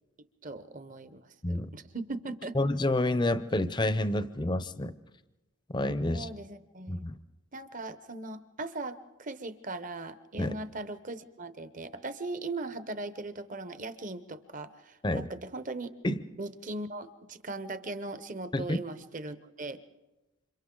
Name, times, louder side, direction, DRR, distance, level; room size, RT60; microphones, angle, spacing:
voice 1, 0.4-2.5 6.0-7.0 7.5-15.9 16.4-19.8, right 2 dB, 35° right, 12 dB, 0.8 m, -39 dB
voice 2, 2.5-4.9 5.7-6.3 6.9-7.2 10.4-10.6 15.0-15.3 16.0-16.2 18.5-18.8, left 1 dB, 20° left, 13 dB, 0.6 m, -28 dB
29.0 x 26.0 x 3.8 m, 1.1 s
head